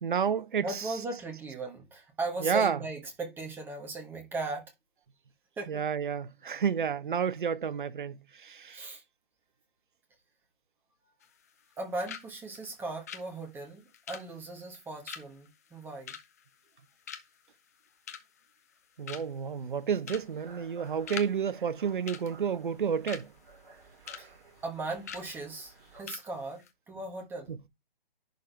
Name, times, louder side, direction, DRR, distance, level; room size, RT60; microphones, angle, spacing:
voice 1, 0.0-0.8 2.4-2.8 5.7-8.9 19.0-23.3 27.5-27.6, right 7 dB, 55° right, 0.9 m, -30 dB
voice 2, 0.6-4.6 5.6-5.8 8.7-9.0 11.8-16.1 24.2-24.3 24.6-27.6, right 2 dB, 5° right, 1.3 m, -38 dB
sound 1, 11.2-11.8 12.1-12.3 12.5-16.8 17.1-17.5 17.8-18.4 18.8-18.9 19.1-19.5 20.0-20.3 20.6-21.3 21.6-21.7 22.1-23.3 23.7-24.2 24.5-24.7 25.1-25.3 25.7-25.8 26.1-26.3 26.5-26.7, left 8 dB, 15° left, 0.5 m, -43 dB
sound 2, 20.1-26.0, right 4 dB, 35° right, 2.7 m, -55 dB
10.5 x 3.9 x 3.3 m
figure-of-eight pair, 145°, 30 cm